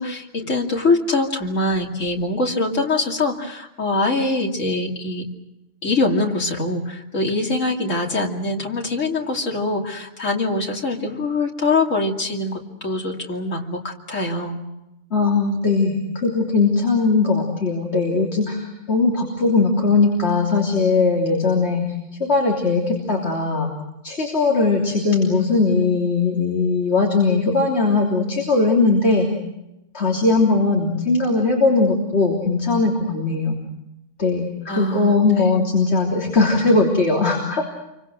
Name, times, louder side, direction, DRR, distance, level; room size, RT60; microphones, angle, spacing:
voice 1, 0.0-5.3 5.8-14.6 34.7-35.5, left 2 dB, 80° left, 0 dB, 3.1 m, -23 dB
voice 2, 15.1-21.9 22.2-23.7 24.0-29.3 29.9-33.6 34.2-34.5 34.8-37.6, left 3 dB, 55° left, -1 dB, 3.6 m, -19 dB
28.5 x 24.5 x 6.4 m, 0.91 s
omnidirectional pair, 1.3 m